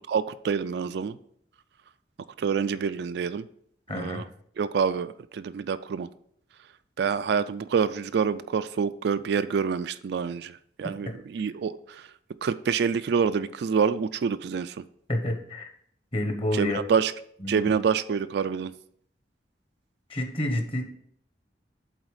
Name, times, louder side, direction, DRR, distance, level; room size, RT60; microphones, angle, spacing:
voice 1, 0.1-1.2 2.4-3.4 3.9-4.2 4.6-6.1 7.0-12.0 12.4-14.8 16.5-17.1 17.5-18.7, right 6 dB, 65° right, 13 dB, 0.3 m, -27 dB
voice 2, 3.9-4.3 10.8-11.2 15.1-15.7 16.1-16.8 17.4-17.7 20.1-20.8, left 1 dB, 30° left, 4 dB, 1.1 m, -29 dB
8.0 x 4.0 x 4.9 m, 0.66 s
head